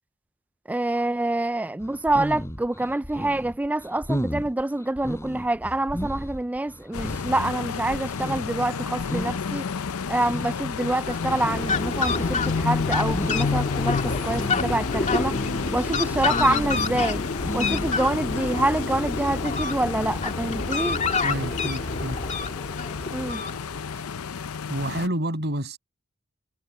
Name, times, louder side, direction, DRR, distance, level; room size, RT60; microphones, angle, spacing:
voice 1, 0.7-9.6 10.1-15.3 15.7-17.2 17.5-21.0 23.1-23.4, right 2 dB, 5° right, 0.3 m, -26 dB
sound 1, 1.8-18.0, equal, 15° left, 6.3 m, -35 dB
sound 2, 6.9-25.1, left 6 dB, 80° left, 0.6 m, -31 dB
Fowl, 11.0-24.0, left 3 dB, 35° left, 2.3 m, -28 dB
voice 2, 21.2-22.2 24.7-25.8, right 1 dB, 50° right, 6.7 m, -29 dB
head